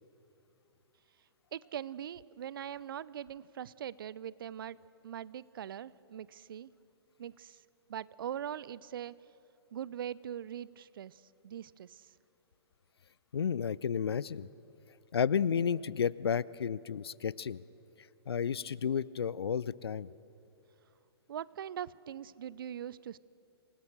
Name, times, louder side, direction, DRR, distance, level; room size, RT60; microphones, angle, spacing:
voice 1, 1.5-4.8 5.0-6.7 7.2-7.6 7.9-9.1 9.7-12.1 21.3-23.2, right 9 dB, 55° right, 21 dB, 0.6 m, -41 dB
voice 2, 13.3-14.5 15.1-17.6 18.3-20.1, left 7 dB, 70° left, 21 dB, 0.5 m, -32 dB
27.0 x 19.5 x 6.7 m, 2.7 s
figure-of-eight pair, 115°, 14 cm